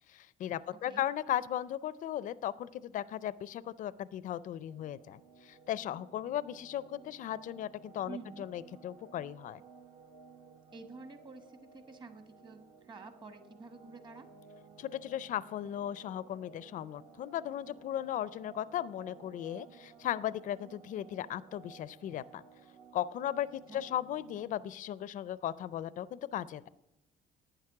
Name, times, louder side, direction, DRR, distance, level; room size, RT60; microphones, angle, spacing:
voice 1, 0.1-9.6 14.8-22.4 22.9-26.7, left 11 dB, 50° left, 18 dB, 0.4 m, -37 dB
sound 1, 4.7-24.5, right 5 dB, 55° right, 1.2 m, -57 dB
voice 2, 8.1-8.4 10.7-14.3 23.7-23.8, right 3 dB, 25° right, 8 dB, 1.2 m, -49 dB
11.5 x 9.0 x 4.8 m, 0.89 s
cardioid pair, 110°, 17 cm